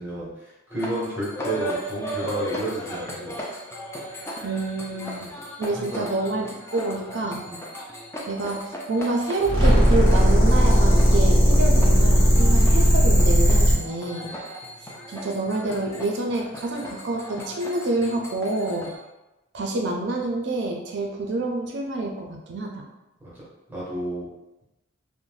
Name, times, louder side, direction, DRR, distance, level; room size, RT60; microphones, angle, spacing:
voice 1, 0.0-3.4 5.2-5.3 5.7-6.1 7.4-7.6 13.7-13.9 14.3-14.4 23.7-24.3, right 1 dB, 10° right, -9 dB, 0.8 m, -31 dB
sound 1, 0.7-19.0, equal, 10° left, 0.3 m, -37 dB
voice 2, 4.4-5.2 5.6-7.4 8.3-14.3 15.1-18.9 19.5-22.8, right 2 dB, 55° right, 1 dB, 0.5 m, -27 dB
sound 2, 9.4-13.8, equal, 40° left, 0.9 m, -16 dB
2.6 x 2.1 x 3.1 m, 1.0 s
head